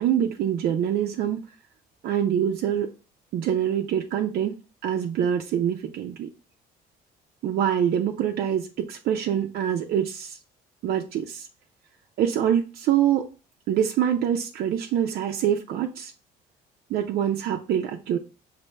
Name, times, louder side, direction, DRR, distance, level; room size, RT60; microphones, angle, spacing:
voice 1, 0.0-1.4 2.0-2.9 3.3-4.5 4.8-6.3 7.4-10.4 10.8-11.5 12.2-13.2 13.7-16.1 16.9-18.2, right 9 dB, 65° right, 2 dB, 0.6 m, -25 dB
5.3 x 2.7 x 3.2 m, 0.34 s
cardioid pair, 110°, 17 cm